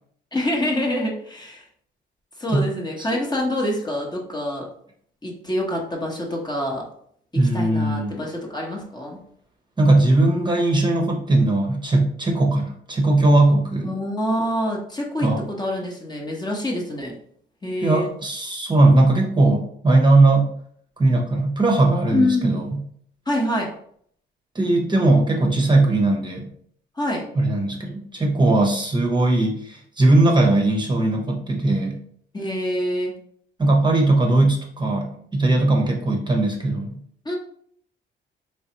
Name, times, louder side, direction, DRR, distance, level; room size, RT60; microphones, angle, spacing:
voice 1, 0.3-1.7 2.4-4.7 5.2-6.8 7.5-9.2 13.8-17.1 17.6-18.1 22.1-22.6 23.3-23.7 27.0-27.2 32.3-33.1 37.2-37.4, left 1 dB, 20° left, -1 dB, 1.0 m, -26 dB
voice 2, 7.3-8.2 9.8-14.0 15.2-15.4 17.8-20.5 21.0-22.8 24.5-26.5 27.4-32.0 33.6-37.0, right 2 dB, 20° right, 1 dB, 0.8 m, -19 dB
3.9 x 3.3 x 2.9 m, 0.64 s
cardioid pair, 90°, 20 cm